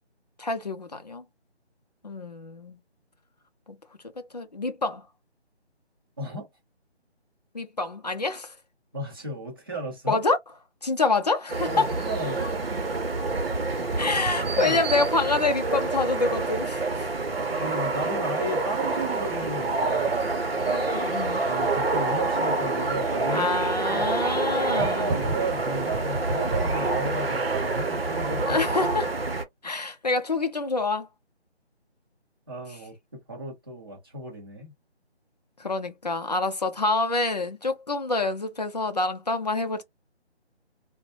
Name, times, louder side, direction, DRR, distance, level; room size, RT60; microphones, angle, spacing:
voice 1, 0.4-1.2 2.0-2.8 3.7-3.8 4.3-5.1 7.5-8.5 10.1-10.4 10.8-11.9 14.0-17.1 17.5-17.6 20.7-21.4 23.3-25.2 28.5-29.1 29.6-31.1 35.6-39.8, left 3 dB, 40° left, 0.5 m, -27 dB
voice 2, 6.2-6.5 8.9-10.2 11.7-12.6 14.6-14.8 17.5-20.3 21.3-23.5 23.9-24.1 24.7-28.6 32.5-34.7, right 1 dB, 20° right, 0.8 m, -34 dB
sound 1, 11.5-29.4, right 3 dB, 60° right, 0.8 m, -27 dB
2.7 x 2.1 x 2.4 m
figure-of-eight pair, 160°, 34 cm